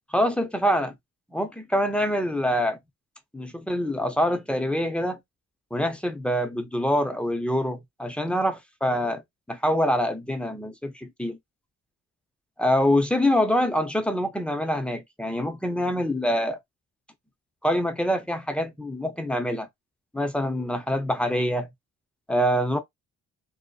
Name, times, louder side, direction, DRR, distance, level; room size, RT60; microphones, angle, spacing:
voice 1, 0.1-0.9 1.3-2.8 3.3-5.2 5.7-9.2 9.5-11.4 12.6-16.6 17.6-19.7 20.1-21.7 22.3-22.8, equal, 5° left, 0.5 m, -25 dB
2.6 x 2.1 x 2.2 m
cardioid pair, 90°, 30 cm